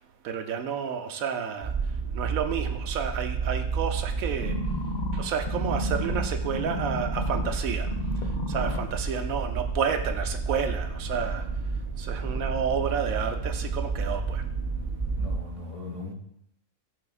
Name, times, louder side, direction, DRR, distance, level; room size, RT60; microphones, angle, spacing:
voice 1, 0.2-1.7 2.1-4.5 5.1-7.9 8.5-11.4 12.0-14.4, right 7 dB, 85° right, 6 dB, 1.1 m, -30 dB
sound 1, 1.6-15.4, right 4 dB, 35° right, 0.9 m, -31 dB
sound 2, 4.4-7.5 7.9-8.9 9.4-9.5, left 3 dB, 45° left, 0.6 m, -33 dB
voice 2, 8.6-9.2 11.1-11.6 12.2-12.9 15.2-16.1, left 2 dB, 25° left, -4 dB, 1.6 m, -41 dB
12.0 x 4.2 x 2.4 m, 0.75 s
omnidirectional pair, 1.4 m